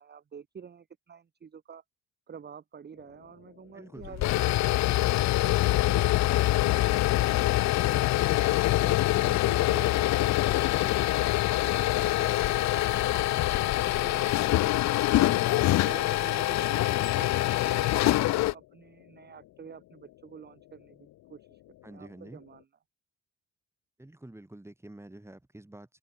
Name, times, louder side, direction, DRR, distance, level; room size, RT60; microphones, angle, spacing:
voice 1, 0.0-1.8 2.3-5.0 5.4-8.6 9.3-15.3 15.8-17.4 17.6-21.6 21.9-22.7, right 7 dB, 35° right, 1.1 m, -48 dB
sound 1, 2.9-22.7, left 16 dB, 85° left, 1.9 m, -58 dB
voice 2, 3.7-4.3 8.8-9.4 15.3-15.8 21.8-22.4 24.0-26.0, right 1 dB, 10° right, 4.6 m, -47 dB
sound 2, 4.0-18.5, left 16 dB, 65° left, 0.4 m, -25 dB
cardioid pair, 90°, 30 cm